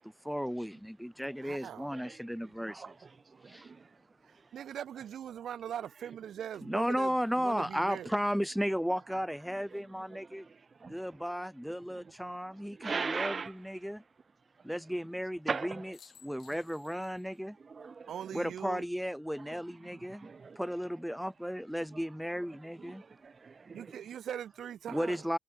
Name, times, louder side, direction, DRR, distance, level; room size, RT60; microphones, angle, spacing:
voice 1, 0.0-3.0 3.4-3.7 6.6-10.5 10.8-14.0 14.6-16.0 16.2-17.6 18.3-20.3 20.6-23.0 24.9-25.4, equal, ahead, 0.9 m, -34 dB
voice 2, 1.4-1.9 4.5-8.1 18.1-18.8 23.7-25.2, right 9 dB, 65° right, 2.1 m, -41 dB
voice 3, 3.3-3.9 9.7-9.8 10.1-10.2 10.5-11.0 11.9-12.0 12.7-13.5 15.5-15.8 17.6-18.1 19.5-19.6 20.1-20.6 22.9-24.0, right 5 dB, 35° right, 1.4 m, -39 dB
sound 1, 7.0-10.2 12.0-12.7 15.5-15.6 15.9-17.5 17.8-17.9 20.2-20.7, left 9 dB, 65° left, 6.0 m, -65 dB
cardioid pair, 90°, 0 cm